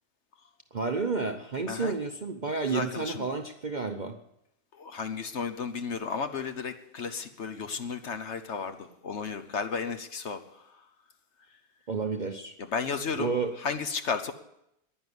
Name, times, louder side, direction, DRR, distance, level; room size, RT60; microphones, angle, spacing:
voice 1, 0.7-4.2 11.9-12.5 13.1-13.6, right 4 dB, 40° right, 6 dB, 0.7 m, -31 dB
voice 2, 2.7-3.3 4.7-10.8 12.6-14.3, left 5 dB, 55° left, 9 dB, 1.1 m, -34 dB
10.5 x 10.0 x 9.6 m, 0.80 s
omnidirectional pair, 1.6 m